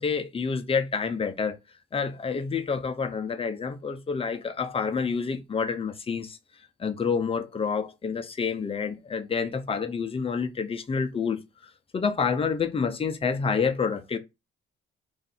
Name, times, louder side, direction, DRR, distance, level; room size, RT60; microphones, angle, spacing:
voice 1, 0.0-1.6 1.9-6.4 6.8-11.4 11.9-14.2, left 5 dB, 30° left, 0.7 m, -28 dB
3.2 x 2.6 x 4.1 m
cardioid pair, 90°, 20 cm